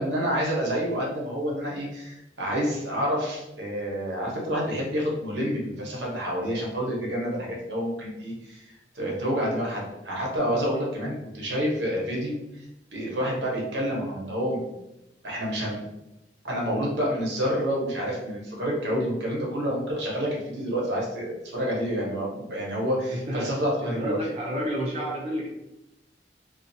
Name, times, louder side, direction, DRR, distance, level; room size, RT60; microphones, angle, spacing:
voice 1, 0.0-8.7 8.9-12.6 12.9-14.7 15.2-15.8 16.4-24.2, equal, 90° right, -3 dB, 0.9 m, -28 dB
voice 2, 23.1-23.6 23.8-25.5, equal, 35° right, -5 dB, 0.5 m, -30 dB
2.4 x 2.4 x 2.6 m, 0.92 s
head